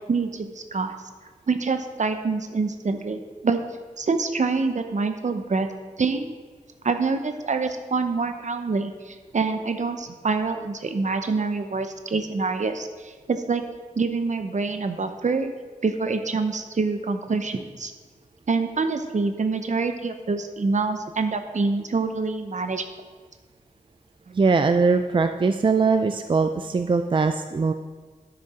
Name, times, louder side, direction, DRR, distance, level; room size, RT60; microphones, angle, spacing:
voice 1, 0.1-0.9 1.5-3.6 4.0-5.7 6.0-6.3 6.8-13.6 14.0-15.5 15.8-17.9 18.5-22.8 24.3-24.4, right 4 dB, 60° right, 8 dB, 0.8 m, -26 dB
voice 2, 24.3-27.7, right 4 dB, 35° right, 8 dB, 0.4 m, -21 dB
11.0 x 6.5 x 4.3 m, 1.4 s
wide cardioid pair, 80°, 14 cm